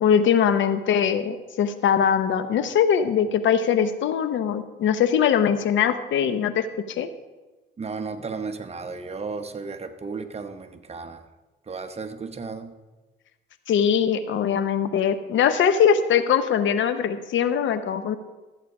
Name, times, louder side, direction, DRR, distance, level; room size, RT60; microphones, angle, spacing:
voice 1, 0.0-7.1 13.7-18.2, left 8 dB, 75° left, 11 dB, 0.9 m, -21 dB
voice 2, 7.8-11.2 11.7-12.7, right 4 dB, 30° right, 8 dB, 1.0 m, -34 dB
13.5 x 8.4 x 4.8 m, 1.2 s
cardioid pair, 90°, 20 cm